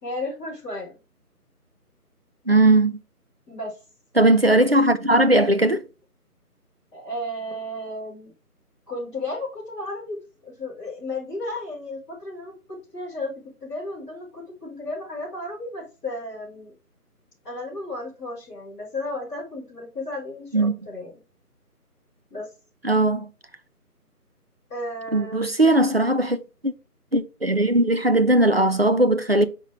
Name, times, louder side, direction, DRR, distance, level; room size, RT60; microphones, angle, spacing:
voice 1, 0.0-1.0 3.5-3.8 6.9-8.3 8.9-10.2 10.4-13.3 13.6-16.7 17.4-21.2 22.3-22.5 24.7-25.5, left 1 dB, 10° left, 3.5 m, -33 dB
voice 2, 2.5-3.0 4.2-5.8 20.5-20.7 22.8-23.3 25.1-26.4 26.6-26.7 27.1-29.5, right 1 dB, 40° right, 0.5 m, -18 dB
5.9 x 5.2 x 3.6 m
figure-of-eight pair, 160°, 47 cm